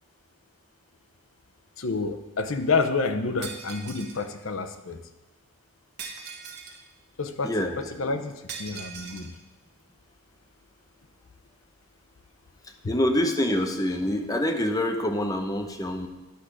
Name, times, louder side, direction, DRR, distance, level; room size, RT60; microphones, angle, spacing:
voice 1, 1.8-5.0 7.2-9.3, left 4 dB, 65° left, 8 dB, 0.7 m, -29 dB
Shatter, 3.4-4.2 6.0-6.8 8.5-9.3, right 5 dB, 50° right, 1.1 m, -40 dB
voice 2, 7.4-7.8 12.9-16.1, left 1 dB, 15° left, 4 dB, 0.8 m, -26 dB
10.5 x 5.0 x 6.1 m, 1.1 s
head